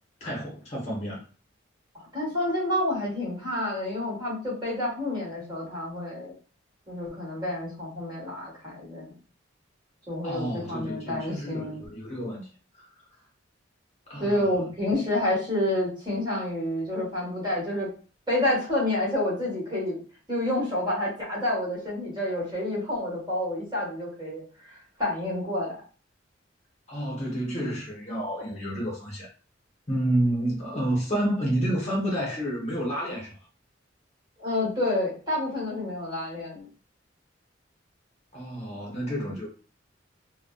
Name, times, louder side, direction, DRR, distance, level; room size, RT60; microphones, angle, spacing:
voice 1, 0.2-1.3 10.2-12.5 12.8-12.9 14.1-14.5 26.9-29.3 29.9-33.3 38.3-39.5, right 1 dB, 35° left, 0.8 m, -29 dB
voice 2, 1.9-6.3 6.9-9.2 10.1-11.9 14.2-17.9 18.3-20.0 20.3-25.7 34.4-36.7, left 1 dB, 25° right, 1.3 m, -29 dB
2.6 x 2.1 x 2.3 m
head